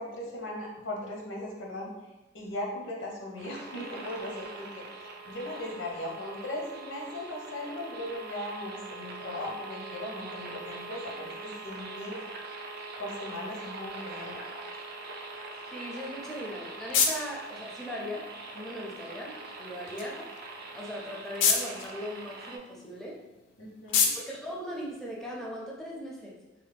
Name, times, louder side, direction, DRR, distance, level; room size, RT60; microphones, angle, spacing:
voice 1, 0.0-1.9 2.3-4.8 5.2-11.3 11.6-12.2 13.0-14.4 23.6-24.0, left 1 dB, 90° left, -1 dB, 0.8 m, -38 dB
sound 1, 3.4-22.6, right 3 dB, 55° right, 0.4 m, -43 dB
voice 2, 15.7-18.3 18.5-20.3 20.7-23.2 24.2-26.4, equal, ahead, -3 dB, 0.4 m, -39 dB
sound 2, 16.1-25.6, left 6 dB, 75° left, 0.4 m, -33 dB
3.2 x 2.0 x 3.3 m, 1.0 s
head